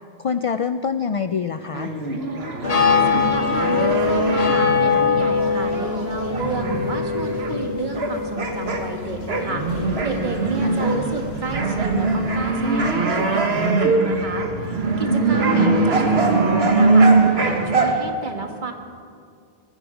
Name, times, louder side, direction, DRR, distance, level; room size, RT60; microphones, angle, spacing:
voice 1, 0.2-1.9 10.6-10.8 15.5-15.9, left 6 dB, 55° left, 11 dB, 0.3 m, -26 dB
sound 1, 1.7-8.1 8.4-17.9, right 3 dB, 80° right, 1.7 m, -22 dB
sound 2, 2.6-12.9, left 5 dB, 75° left, 1.6 m, -24 dB
voice 2, 3.1-18.7, right 3 dB, 50° right, 4 dB, 1.6 m, -30 dB
19.0 x 14.0 x 4.9 m, 2.3 s
omnidirectional pair, 1.0 m